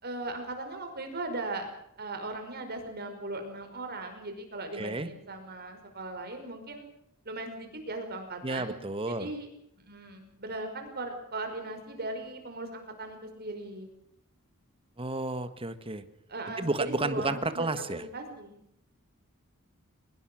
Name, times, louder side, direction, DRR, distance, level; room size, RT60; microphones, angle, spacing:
voice 1, 0.0-1.7 2.0-6.9 7.3-8.7 9.0-9.5 9.8-13.9 16.3-18.6, right 2 dB, 50° right, 6 dB, 5.5 m, -38 dB
voice 2, 4.8-5.1 8.4-9.3 15.0-16.0 16.6-18.0, right 2 dB, 25° right, 11 dB, 1.5 m, -31 dB
23.0 x 21.0 x 6.4 m, 0.73 s
head